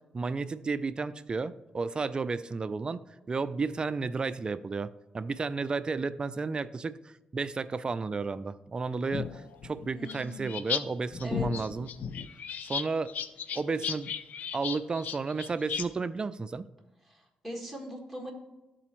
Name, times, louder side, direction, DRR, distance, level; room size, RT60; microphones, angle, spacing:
voice 1, 0.1-4.9 5.1-11.9 12.7-13.1 13.5-14.1 14.5-16.7, right 4 dB, 30° right, 13 dB, 0.4 m, -32 dB
sound 1, 9.1-10.8 11.1-15.9, left 7 dB, 70° left, 0.4 m, -35 dB
voice 2, 9.9-10.5 11.2-11.5 17.4-18.3, equal, ahead, 0 dB, 1.8 m, -39 dB
12.0 x 4.2 x 3.1 m, 1.1 s
cardioid pair, 90°, 3 cm